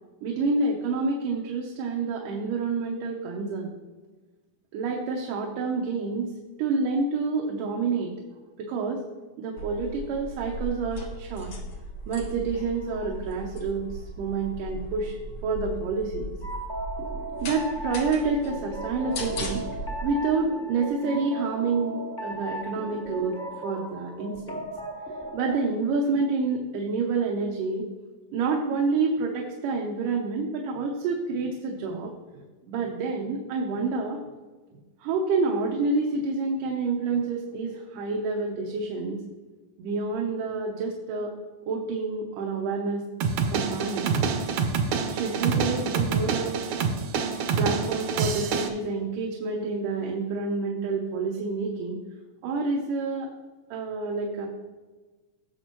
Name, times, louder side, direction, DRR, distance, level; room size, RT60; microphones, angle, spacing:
voice 1, 0.2-3.7 4.7-6.3 6.6-8.1 8.6-9.0 9.4-11.5 12.1-15.2 15.4-16.3 17.4-19.7 20.0-23.3 23.6-24.6 25.3-27.9 28.3-32.1 32.7-34.2 35.0-39.2 39.8-41.3 41.7-43.0 43.5-44.1 45.1-46.5 47.6-52.0 52.4-53.3 53.7-54.5, right 4 dB, 85° right, -1 dB, 2.6 m, -28 dB
sound 1, 9.6-20.1, equal, 55° left, 1.9 m, -37 dB
sound 2, 16.4-25.7, right 1 dB, 20° left, 1.3 m, -36 dB
sound 3, 43.2-48.7, right 5 dB, 70° right, 2.0 m, -26 dB
17.5 x 6.6 x 3.0 m, 1.3 s
omnidirectional pair, 3.7 m